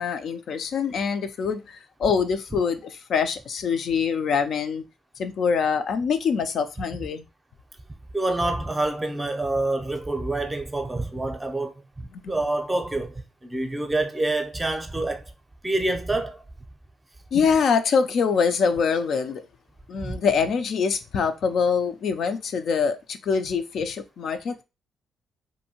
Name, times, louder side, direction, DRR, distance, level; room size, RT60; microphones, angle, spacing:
voice 1, 0.0-4.8 5.2-7.2 12.2-12.3 17.3-19.5 19.9-24.6, left 6 dB, 65° left, 0.3 m, -24 dB
voice 2, 8.1-15.3 15.6-16.4 20.0-20.2, right 2 dB, 15° right, 0.5 m, -27 dB
2.6 x 2.6 x 2.8 m
cardioid pair, 90°, 0 cm